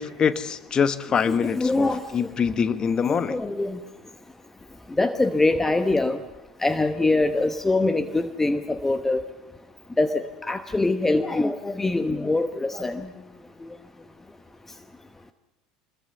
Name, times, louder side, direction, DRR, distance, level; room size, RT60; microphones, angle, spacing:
voice 1, 0.0-3.4, left 6 dB, 30° left, 12 dB, 1.3 m, -24 dB
voice 2, 1.5-2.0 3.3-3.8 5.0-6.2 6.6-9.2 10.0-13.0, left 2 dB, 10° left, 9 dB, 1.1 m, -23 dB
25.5 x 21.5 x 7.0 m, 1.1 s
figure-of-eight pair, 70°, 3 cm